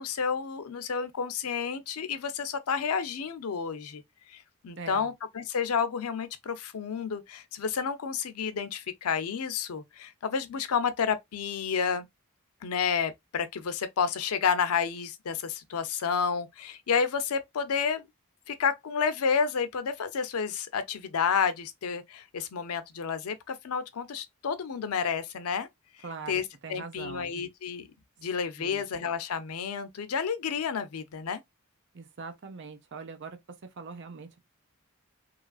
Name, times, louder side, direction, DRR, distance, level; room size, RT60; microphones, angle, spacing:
voice 1, 0.0-4.0 4.6-12.1 12.6-18.1 18.5-25.7 26.3-26.4 26.7-27.9 28.2-31.4, left 6 dB, 80° left, 0.5 m, -30 dB
voice 2, 4.8-5.1 26.0-27.3 28.6-28.8 31.9-34.4, right 4 dB, 55° right, 0.6 m, -42 dB
2.9 x 2.4 x 2.3 m
head